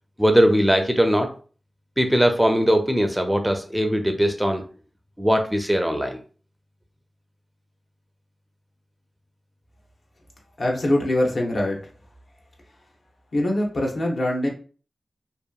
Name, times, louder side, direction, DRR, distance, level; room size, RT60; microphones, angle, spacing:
voice 1, 0.2-1.3 2.0-4.6 5.2-6.2, equal, 10° right, 5 dB, 0.4 m, -20 dB
voice 2, 10.6-11.8 13.3-14.5, left 1 dB, 65° left, 0 dB, 0.7 m, -23 dB
2.7 x 2.4 x 2.3 m, 0.39 s
cardioid pair, 60°, 0 cm